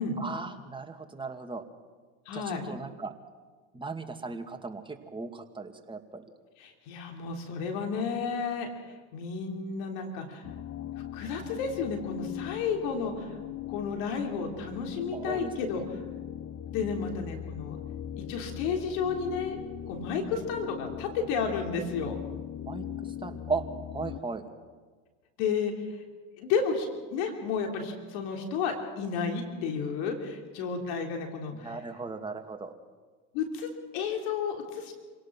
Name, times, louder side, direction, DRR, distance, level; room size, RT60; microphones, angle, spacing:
voice 1, 0.2-1.6 2.3-3.1 3.7-6.2 15.1-15.9 22.7-23.6 23.9-24.5 31.5-32.7, right 4 dB, 10° right, 4 dB, 2.4 m, -37 dB
voice 2, 2.2-2.6 6.6-8.7 9.1-10.4 11.1-13.3 13.7-15.8 16.7-17.8 18.3-19.6 19.9-22.2 25.4-25.7 26.4-31.8 33.3-34.9, left 5 dB, 70° left, 3 dB, 3.4 m, -32 dB
sound 1, 10.4-24.2, left 11 dB, 40° left, 1.0 m, -40 dB
27.0 x 18.0 x 6.2 m, 1.4 s
hypercardioid pair, 85°, 40 cm